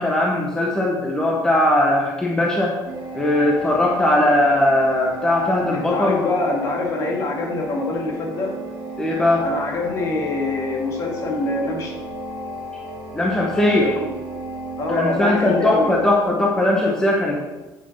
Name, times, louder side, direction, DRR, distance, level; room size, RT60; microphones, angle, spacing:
voice 1, 0.0-2.8 3.1-6.2 9.0-9.4 13.1-13.9 14.9-17.4, left 1 dB, 10° left, -2 dB, 1.0 m, -19 dB
sound 1, 2.9-16.2, equal, 30° right, 2.2 m, -34 dB
voice 2, 5.7-8.5 9.4-11.9 13.8-14.1 14.8-15.9, left 2 dB, 40° left, 0 dB, 1.9 m, -25 dB
8.1 x 5.8 x 5.7 m, 1.1 s
cardioid pair, 170°, 8 cm